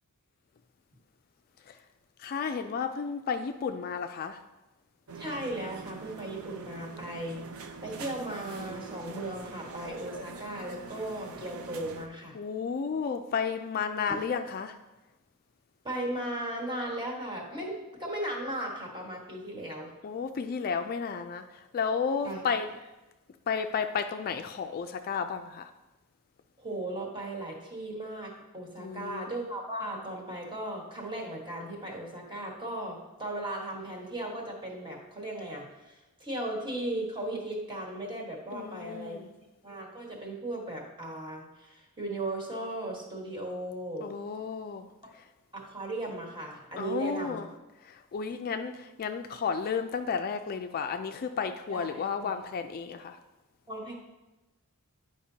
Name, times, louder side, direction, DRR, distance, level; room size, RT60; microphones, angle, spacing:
voice 1, 2.2-4.4 12.3-14.8 20.0-22.7 23.5-25.7 28.8-29.3 38.5-39.3 44.0-44.9 46.8-47.5 47.8-53.2, left 6 dB, 40° left, 7 dB, 0.3 m, -32 dB
voice 2, 5.1-7.4 7.8-12.4 15.8-19.9 22.2-22.4 26.6-39.2 39.6-44.1 45.5-47.4 51.7-52.3 53.7-53.9, right 1 dB, 20° right, -2 dB, 1.4 m, -37 dB
sound 1, 5.1-12.1, right 4 dB, 70° right, 0.6 m, -44 dB
10.0 x 5.1 x 2.8 m, 1.1 s
head